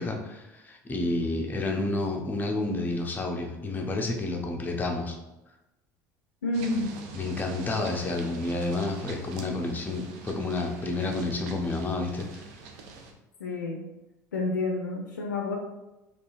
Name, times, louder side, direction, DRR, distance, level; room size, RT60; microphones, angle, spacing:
voice 1, 0.0-5.2 7.1-12.4, left 2 dB, 20° left, 1 dB, 0.6 m, -30 dB
voice 2, 6.4-6.9 7.7-7.9 13.4-13.8 14.3-15.6, left 2 dB, 80° left, 0 dB, 0.4 m, -29 dB
sound 1, 6.5-13.1, right 3 dB, 55° right, 0.4 m, -44 dB
3.6 x 2.4 x 2.5 m, 0.98 s
figure-of-eight pair, 65°, 10 cm